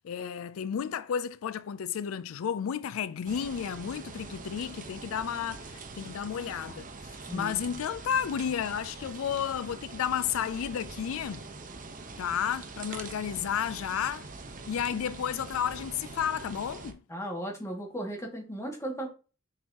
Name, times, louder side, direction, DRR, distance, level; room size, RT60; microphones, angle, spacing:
voice 1, 0.0-11.5 12.2-14.3 14.7-17.0, left 8 dB, 85° left, 0.4 m, -32 dB
sound 1, 3.3-16.9, right 3 dB, 40° right, 0.9 m, -44 dB
voice 2, 17.1-19.1, right 1 dB, 15° left, 1.9 m, -36 dB
7.5 x 4.6 x 2.8 m
head